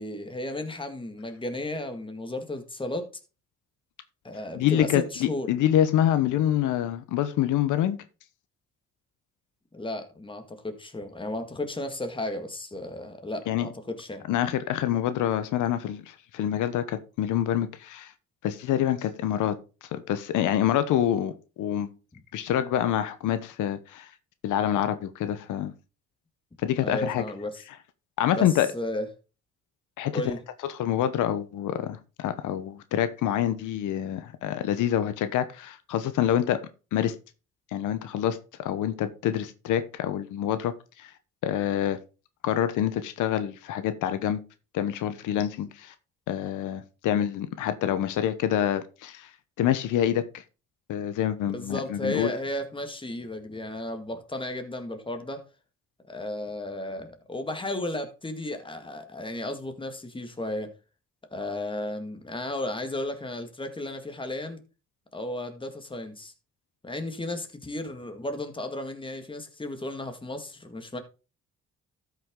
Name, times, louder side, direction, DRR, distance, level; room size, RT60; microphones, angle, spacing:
voice 1, 0.0-3.1 4.2-5.5 9.7-14.2 26.8-27.6 28.3-28.5 28.7-29.1 30.1-30.4 51.5-55.4 56.1-60.7 61.3-64.6 65.1-66.3 66.8-71.0, left 1 dB, 15° left, 1.9 m, -34 dB
voice 2, 4.5-8.0 13.5-13.7 14.3-18.1 18.4-21.3 21.6-21.9 22.3-24.1 24.4-25.7 26.6-27.2 28.2-28.7 30.0-30.3 30.7-36.6 36.9-37.1 37.7-41.1 41.4-42.0 42.4-44.4 44.7-45.9 46.3-49.3 49.6-50.4 50.9-52.3, left 11 dB, 85° left, 1.0 m, -26 dB
13.0 x 5.9 x 3.7 m
cardioid pair, 90°, 30 cm